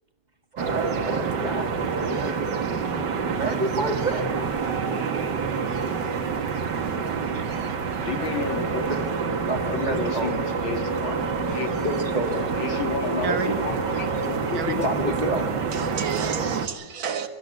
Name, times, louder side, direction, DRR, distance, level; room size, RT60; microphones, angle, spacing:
voice 1, 0.5-2.3 3.3-4.3 7.0-7.7 8.9-9.0 9.5-10.5 11.5-12.5 14.8-15.5, right 2 dB, 20° right, 2.0 m, -30 dB
sound 1, 0.6-16.7, right 5 dB, 60° right, 2.1 m, -27 dB
voice 2, 8.0-8.9 9.6-10.4 10.6-11.2 11.5-11.9 12.6-15.3, left 5 dB, 80° left, 2.7 m, -32 dB
Wind instrument woodwind instrument, 8.1-14.9, left 1 dB, 40° left, 1.9 m, -33 dB
voice 3, 13.2-13.6 14.5-14.8 15.7-17.3, right 7 dB, 80° right, 2.3 m, -30 dB
24.0 x 13.0 x 9.5 m
omnidirectional pair, 2.1 m